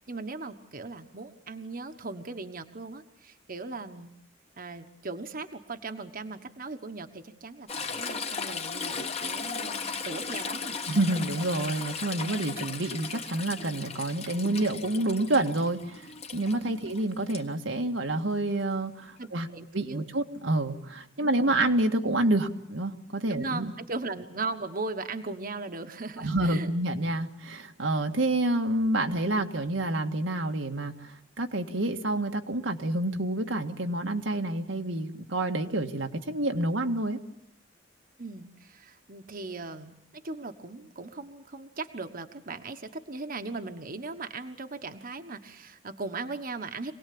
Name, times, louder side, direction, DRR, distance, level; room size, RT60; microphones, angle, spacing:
voice 1, 0.0-4.1 4.6-10.8 19.2-20.1 21.2-21.5 23.3-26.7 38.2-46.9, right 3 dB, 50° right, 8 dB, 1.3 m, -38 dB
Toilet flush / Trickle dribble, 7.7-17.4 19.2-19.3, left 5 dB, 35° left, 1.5 m, -36 dB
voice 2, 10.9-19.5 19.7-23.7 26.2-37.2, right 1 dB, 85° right, 4 dB, 1.9 m, -28 dB
26.0 x 19.0 x 8.7 m, 0.73 s
head